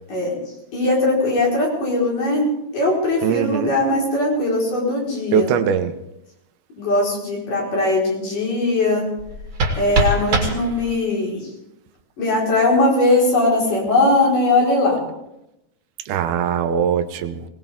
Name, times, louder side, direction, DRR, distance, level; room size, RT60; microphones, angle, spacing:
voice 1, 0.7-2.5 2.7-5.5 6.8-9.1 9.8-11.5 12.2-15.0, left 2 dB, 60° left, -3 dB, 6.0 m, -19 dB
voice 2, 3.2-3.7 5.3-5.9 16.1-17.4, right 8 dB, 80° right, 9 dB, 2.8 m, -21 dB
sound 1, 9.2-11.2, right 2 dB, 40° right, 2.4 m, -23 dB
21.0 x 19.0 x 3.6 m, 0.86 s
omnidirectional pair, 4.4 m